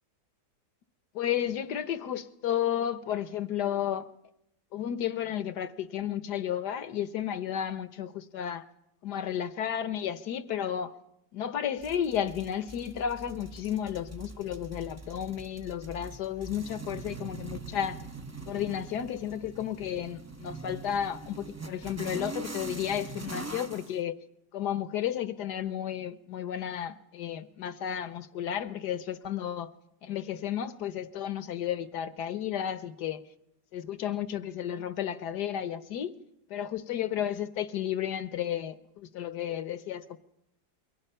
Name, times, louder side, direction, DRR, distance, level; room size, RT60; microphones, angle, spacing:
voice 1, 1.1-4.1 4.7-8.6 9.0-10.9 11.3-18.0 18.5-24.2 24.5-29.7 30.0-33.2 33.7-36.1 36.5-40.2, left 10 dB, 70° left, 1.6 m, -33 dB
sound 1, 11.8-23.9, right 3 dB, 20° right, 0.4 m, -43 dB
28.5 x 23.0 x 5.7 m
omnidirectional pair, 1.9 m